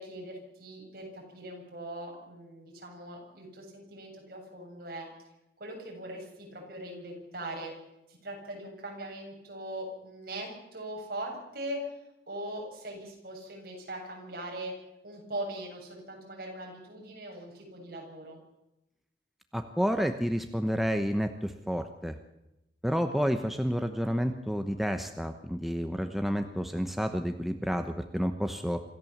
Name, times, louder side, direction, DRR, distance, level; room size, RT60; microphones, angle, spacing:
voice 1, 0.0-5.1 5.6-7.7 8.1-11.9 12.3-14.7 15.0-18.4, right 1 dB, 55° right, 0 dB, 7.5 m, -40 dB
voice 2, 19.5-22.2 22.8-28.8, equal, ahead, 6 dB, 1.0 m, -30 dB
26.0 x 14.0 x 7.4 m, 0.90 s
head